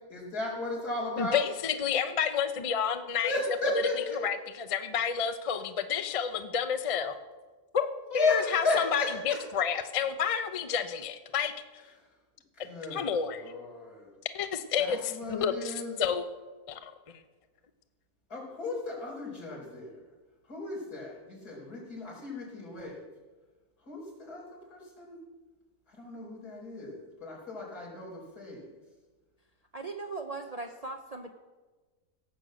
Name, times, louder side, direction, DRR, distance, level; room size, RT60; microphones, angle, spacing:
voice 1, 0.1-1.4 3.2-4.2 8.1-9.1 12.6-14.1 14.8-15.9 18.3-20.0 20.5-23.1 23.9-25.2 26.0-28.7, left 3 dB, 80° left, -5 dB, 5.1 m, -34 dB
voice 2, 1.2-3.4 3.7-3.8 4.2-7.1 7.7-7.9 8.1-11.8 12.9-13.4 14.3-16.2 16.7-16.9, left 7 dB, 40° left, 9 dB, 0.5 m, -30 dB
voice 3, 29.7-31.3, right 3 dB, 35° right, 4 dB, 0.6 m, -38 dB
17.0 x 6.6 x 7.6 m, 1.3 s
omnidirectional pair, 1.6 m